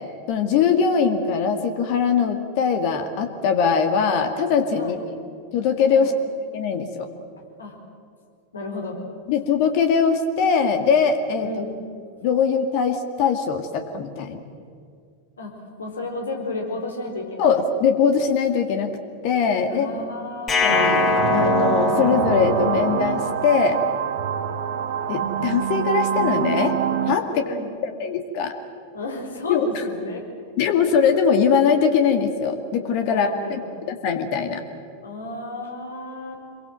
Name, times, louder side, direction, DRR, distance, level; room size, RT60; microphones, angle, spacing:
voice 1, 0.3-5.2 5.5-6.1 6.5-7.1 9.3-11.5 12.2-14.4 17.4-19.0 19.2-19.9 20.6-21.0 21.3-23.8 25.1-26.8 27.1-27.4 27.8-28.5 29.5-29.8 30.6-33.6 33.9-34.6, left 6 dB, 45° left, 6 dB, 2.1 m, -21 dB
voice 2, 7.4-7.8 8.5-9.0 11.4-11.8 15.4-17.6 19.7-20.7 27.2-27.7 28.9-30.2 33.1-33.7 35.0-36.4, left 2 dB, 70° left, 3 dB, 4.7 m, -33 dB
sound 1, 20.5-23.6, left 3 dB, 25° left, 3.7 m, -23 dB
sound 2, 20.7-27.2, right 8 dB, 55° right, 1.8 m, -25 dB
27.5 x 22.5 x 7.7 m, 2.3 s
figure-of-eight pair, 90°, 0 cm